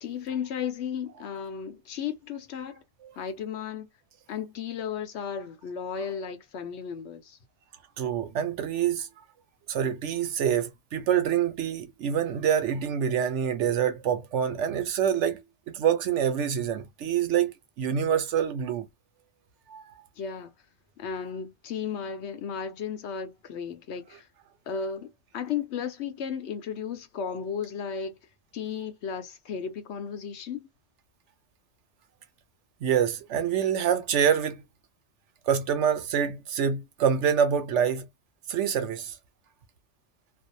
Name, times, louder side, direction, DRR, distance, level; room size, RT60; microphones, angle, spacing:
voice 1, 0.0-2.8 3.2-3.9 4.3-7.4 20.2-20.5 21.0-24.3 24.7-28.2 28.5-30.7, left 7 dB, 75° left, 0.9 m, -34 dB
voice 2, 8.0-9.1 9.7-18.9 19.7-20.1 32.8-34.6 35.5-38.1 38.5-39.2, right 8 dB, 80° right, 1.0 m, -26 dB
2.6 x 2.0 x 2.6 m
omnidirectional pair, 1.2 m